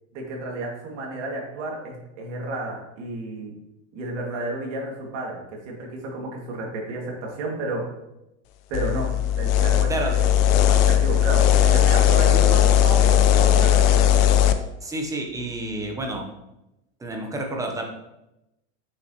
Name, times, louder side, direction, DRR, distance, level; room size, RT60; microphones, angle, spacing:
voice 1, 0.1-3.5 3.9-7.9 8.7-14.2, right 2 dB, 75° right, -1 dB, 2.1 m, -32 dB
sound 1, 8.7-14.5, left 10 dB, 55° left, 0.6 m, -18 dB
voice 2, 14.8-16.3 17.0-17.8, right 2 dB, 10° right, 2 dB, 0.8 m, -29 dB
6.2 x 6.2 x 2.9 m, 0.91 s
supercardioid pair, 150°, 36 cm